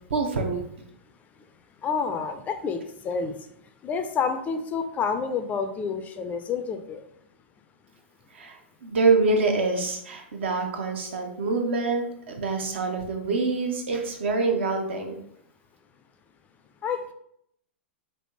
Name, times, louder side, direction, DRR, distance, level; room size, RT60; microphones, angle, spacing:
voice 1, 0.1-0.6 8.3-15.2, right 3 dB, 70° right, 3 dB, 0.7 m, -25 dB
voice 2, 1.8-3.3 3.8-7.0 16.8-17.1, left 5 dB, 25° left, 8 dB, 0.3 m, -29 dB
3.3 x 2.6 x 2.9 m, 0.70 s
figure-of-eight pair, 100°, 7 cm